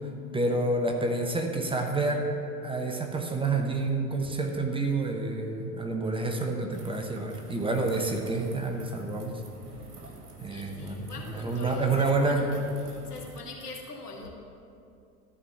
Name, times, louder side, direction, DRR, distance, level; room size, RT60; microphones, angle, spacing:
voice 1, 0.3-2.3 2.6-9.3 10.4-12.5, right 3 dB, 10° right, 2 dB, 1.0 m, -28 dB
sound 1, 6.7-13.4, right 2 dB, 80° right, 1.4 m, -47 dB
voice 2, 10.4-12.5 12.8-14.3, left 3 dB, 80° left, 0 dB, 1.8 m, -43 dB
13.5 x 5.1 x 7.1 m, 2.5 s
figure-of-eight pair, 80°, 46 cm